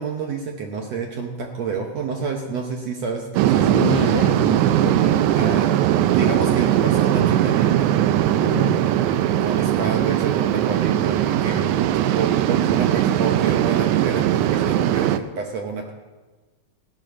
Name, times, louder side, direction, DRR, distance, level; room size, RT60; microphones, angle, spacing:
voice 1, 0.0-3.7 5.3-5.8 6.1-7.9 8.3-8.6 9.4-11.7 12.1-15.9, right 5 dB, 65° right, 2 dB, 1.7 m, -28 dB
sound 1, 3.3-15.2, right 11 dB, 85° right, 1.7 m, -19 dB
voice 2, 3.6-5.2 8.4-8.9, left 11 dB, 85° left, 14 dB, 2.2 m, -29 dB
16.0 x 7.6 x 6.2 m, 1.3 s
omnidirectional pair, 4.0 m